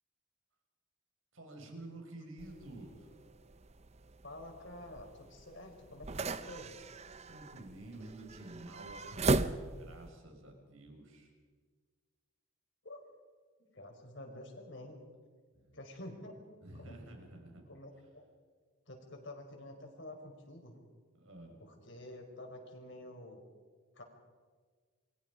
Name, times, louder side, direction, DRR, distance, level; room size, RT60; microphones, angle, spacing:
voice 1, 1.3-3.1 7.3-11.3 15.5-15.8 16.6-17.7 21.2-21.6, right 1 dB, 70° right, 2 dB, 5.8 m, -50 dB
sound 1, 2.4-10.1, right 2 dB, 30° right, 0.7 m, -38 dB
voice 2, 4.2-6.8 12.8-13.0 13.6-15.0 15.7-16.9 17.7-18.3 18.9-20.8 21.6-23.4 23.9-24.0, left 1 dB, 55° left, 3 dB, 4.9 m, -49 dB
29.0 x 23.5 x 5.2 m, 1.5 s
head